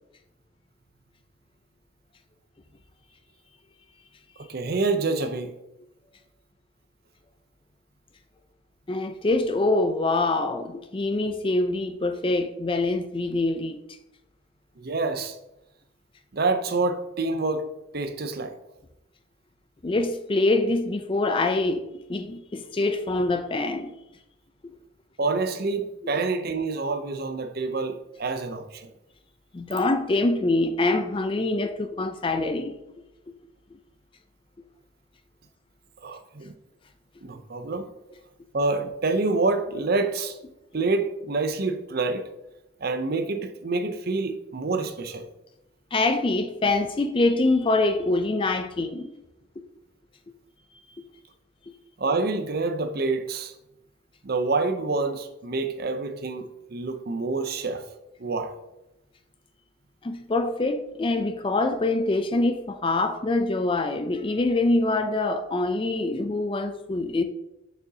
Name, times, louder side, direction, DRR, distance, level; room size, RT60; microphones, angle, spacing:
voice 1, 4.5-5.5 14.8-15.4 16.3-17.7 17.9-18.6 25.2-28.9 36.0-36.5 37.2-37.9 38.5-40.4 40.7-42.3 42.8-45.3 52.0-53.5 54.2-57.8 58.2-58.5, right 3 dB, 50° right, 0.6 m, -27 dB
voice 2, 8.9-13.8 19.8-21.8 22.1-23.9 29.5-32.8 45.9-49.1 60.0-67.2, left 2 dB, 25° left, 0.4 m, -25 dB
6.9 x 6.1 x 2.8 m
head